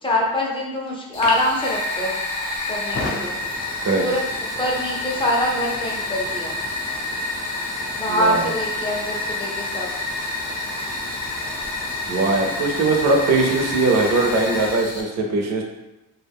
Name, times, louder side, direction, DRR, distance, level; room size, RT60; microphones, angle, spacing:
voice 1, 0.0-2.2 2.7-3.4 3.9-4.2 4.6-6.6 8.0-9.9, left 1 dB, 15° left, -3 dB, 0.5 m, -24 dB
Fire, 1.1-15.0, left 2 dB, 50° left, 0.7 m, -28 dB
voice 2, 8.1-8.5 12.1-15.6, right 3 dB, 50° right, 2 dB, 0.5 m, -20 dB
2.4 x 2.2 x 3.4 m, 0.99 s
cardioid pair, 155°, 34 cm